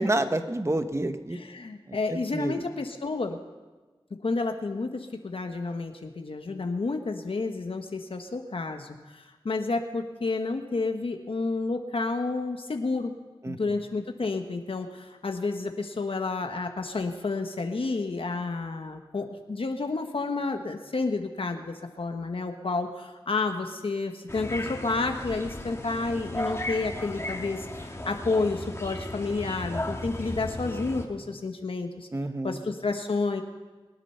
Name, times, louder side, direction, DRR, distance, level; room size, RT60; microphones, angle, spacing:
voice 1, 0.0-1.4 1.9-2.0 2.3-2.5 13.4-13.6 32.1-32.6, right 1 dB, 30° right, 9 dB, 1.1 m, -28 dB
voice 2, 1.3-3.4 4.2-13.1 13.4-32.1 32.4-33.4, left 3 dB, 70° left, 5 dB, 1.1 m, -30 dB
sound 1, 24.3-31.0, left 1 dB, 30° left, 1.9 m, -35 dB
23.0 x 9.0 x 5.6 m, 1.3 s
wide cardioid pair, 50°, 10 cm